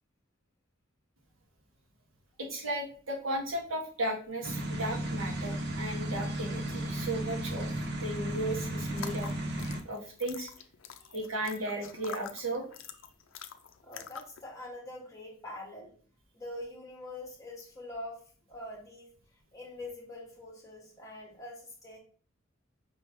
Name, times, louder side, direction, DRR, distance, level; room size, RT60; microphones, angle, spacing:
voice 1, 2.4-7.7 8.0-9.3 9.8-10.5 11.0-12.6, right 1 dB, 85° right, 0 dB, 1.4 m, -35 dB
sound 1, 4.4-9.8, right 1 dB, 55° right, 0.8 m, -34 dB
sound 2, 8.9-14.4, left 8 dB, 70° left, 0.5 m, -46 dB
voice 2, 13.8-15.9 16.3-18.2 18.5-19.1 19.5-22.0, left 1 dB, 15° left, -2 dB, 1.5 m, -44 dB
5.3 x 3.5 x 2.8 m, 0.43 s
head